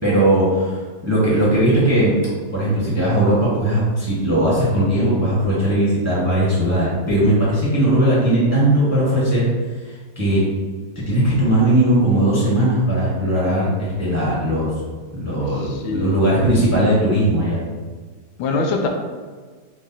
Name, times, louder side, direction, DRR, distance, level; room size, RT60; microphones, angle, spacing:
voice 1, 0.0-0.8 1.0-2.1 2.5-9.5 9.8-10.4 11.1-14.7 15.1-17.6, right 1 dB, 10° right, -7 dB, 0.8 m, -18 dB
voice 2, 15.4-16.2 18.4-18.9, left 3 dB, 90° left, 3 dB, 1.4 m, -24 dB
4.6 x 2.4 x 4.0 m, 1.5 s
omnidirectional pair, 2.1 m